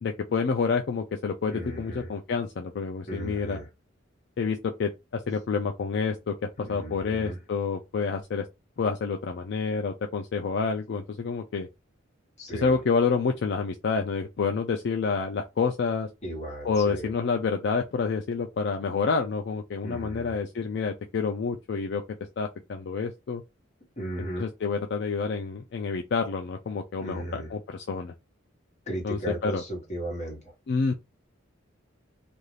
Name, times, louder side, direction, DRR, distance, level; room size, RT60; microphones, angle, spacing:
voice 1, 0.0-3.6 4.4-8.5 8.8-11.7 12.6-16.1 16.6-22.0 22.4-23.4 24.4-28.1 29.0-29.6 30.7-30.9, left 5 dB, 60° left, 0.4 m, -28 dB
voice 2, 1.5-2.1 3.1-3.7 6.6-7.4 12.4-12.8 16.2-17.1 19.8-20.3 24.0-24.5 27.0-27.5 28.9-30.5, right 1 dB, 35° left, 1.1 m, -36 dB
2.5 x 2.4 x 3.1 m
head